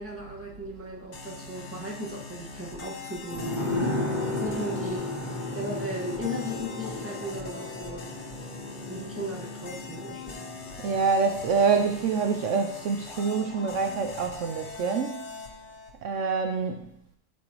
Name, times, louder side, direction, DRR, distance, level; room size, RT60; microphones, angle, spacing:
voice 1, 0.0-3.8 4.3-5.1 5.5-8.0 8.9-10.5, equal, 10° right, -4 dB, 1.5 m, -36 dB
sound 1, 1.1-15.9, left 4 dB, 60° left, 1.3 m, -42 dB
sound 2, 3.3-12.6 12.9-13.0, left 2 dB, 35° left, 1.3 m, -34 dB
voice 2, 10.8-15.3 16.0-16.9, right 5 dB, 70° right, 5 dB, 0.9 m, -26 dB
12.5 x 4.4 x 3.0 m, 0.73 s
omnidirectional pair, 1.4 m